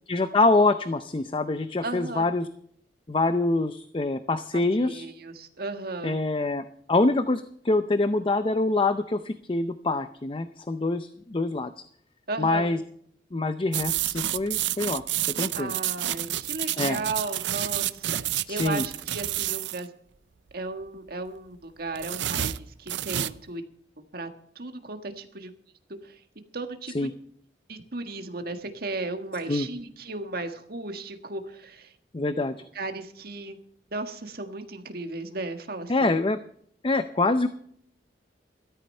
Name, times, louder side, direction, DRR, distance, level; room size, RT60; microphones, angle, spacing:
voice 1, 0.1-2.5 3.1-5.1 6.0-11.8 12.4-12.8 13.3-15.0 15.4-15.7 16.8-17.0 18.5-18.8 26.9-27.1 29.5-29.7 32.1-32.6 35.9-36.4 36.8-37.5, left 2 dB, 30° left, 11 dB, 0.5 m, -25 dB
voice 2, 1.8-2.3 4.5-6.2 12.3-12.7 15.5-19.9 20.5-23.6 24.1-24.3 24.5-25.5 26.0-26.2 26.5-27.1 27.7-31.9 32.7-33.6 33.9-36.2, right 2 dB, 55° right, 6 dB, 1.6 m, -35 dB
sound 1, 13.7-19.8 21.9-23.4, right 13 dB, 75° right, 0.5 m, -29 dB
14.0 x 13.0 x 5.5 m, 0.64 s
head